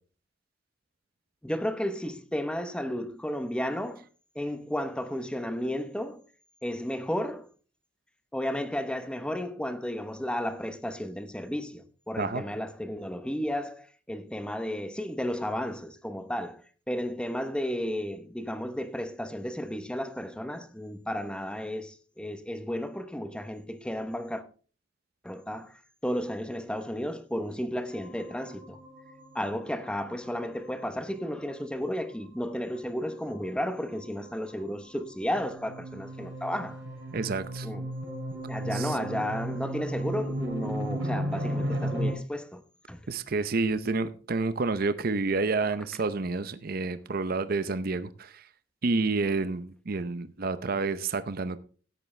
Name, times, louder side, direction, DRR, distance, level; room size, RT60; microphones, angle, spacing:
voice 1, 1.4-4.1 4.3-6.2 6.6-7.5 8.3-24.4 25.2-28.8 29.3-36.8 37.6-37.9 38.5-42.6 42.9-43.1, equal, 5° left, 0.9 m, -33 dB
sound 1, 27.9-42.1, right 1 dB, 65° right, 4.2 m, -36 dB
voice 2, 37.1-37.7 38.7-39.0 43.1-48.5 48.8-51.6, right 3 dB, 50° right, 0.6 m, -29 dB
13.5 x 9.7 x 3.2 m
head